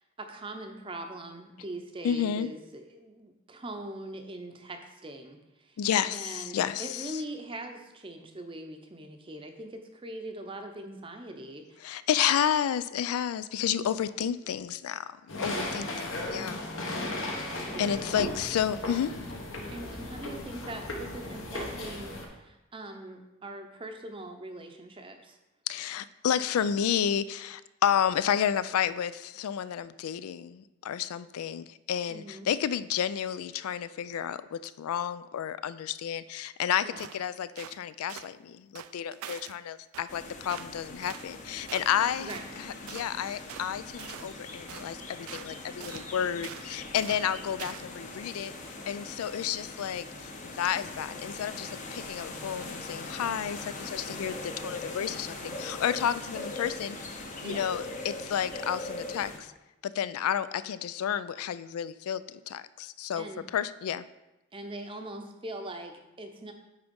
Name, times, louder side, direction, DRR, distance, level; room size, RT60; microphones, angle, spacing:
voice 1, 0.0-5.8 6.1-11.8 15.5-15.8 17.7-18.3 19.7-25.4 32.1-32.5 36.8-37.0 42.2-42.5 57.4-57.7 63.1-63.4 64.5-66.5, right 1 dB, 25° right, 5 dB, 0.6 m, -42 dB
voice 2, 2.0-2.5 5.8-7.1 11.8-16.6 17.6-19.2 25.7-48.5 48.9-50.1 50.4-57.0 57.4-59.5 59.8-63.3 63.5-64.0, left 9 dB, 85° left, 16 dB, 0.3 m, -31 dB
sound 1, 15.3-22.3, left 1 dB, 65° left, 1.1 m, -36 dB
sound 2, 37.0-37.2 37.6-37.8 38.1-38.3 38.7-39.6 39.9-40.1 40.5-40.7 41.0-41.3 41.7-42.0 42.3-42.5 42.9-43.1 43.5-43.7 44.0-44.4 44.7-44.9 45.3-45.5 45.8-46.1 46.4-46.7 47.0-47.3 47.6-47.9, right 11 dB, 80° right, 0.3 m, -44 dB
sound 3, 40.1-59.4, left 2 dB, 35° left, 0.7 m, -41 dB
9.0 x 3.5 x 5.2 m, 0.99 s
head